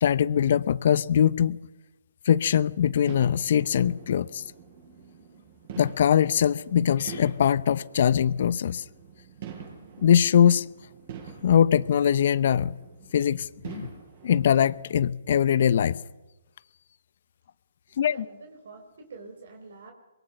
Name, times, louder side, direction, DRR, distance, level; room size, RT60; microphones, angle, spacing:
voice 1, 0.0-1.6 2.3-4.4 5.8-8.8 10.0-10.7 11.4-12.8 13.1-13.9 14.2-16.0 18.0-18.2, left 9 dB, 55° left, 0.9 m, -22 dB
sound 1, 3.0-14.8, right 7 dB, 45° right, 7.0 m, -46 dB
voice 2, 18.0-19.9, right 4 dB, 60° right, 4.1 m, -46 dB
24.0 x 22.5 x 5.9 m
hypercardioid pair, 140°, 0 cm